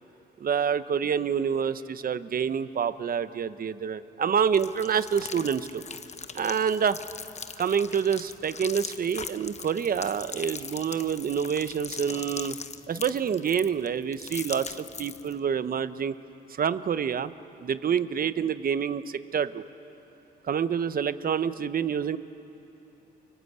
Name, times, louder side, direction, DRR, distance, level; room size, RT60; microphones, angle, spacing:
voice 1, 0.4-5.8 6.3-7.0 7.6-12.6 12.9-16.1 16.5-17.3 17.6-19.6 20.5-22.2, right 7 dB, 45° right, 13 dB, 1.0 m, -27 dB
sound 1, 4.5-15.4, left 5 dB, 35° left, 1.0 m, -41 dB
30.0 x 24.0 x 8.1 m, 3.0 s
cardioid pair, 90°, 20 cm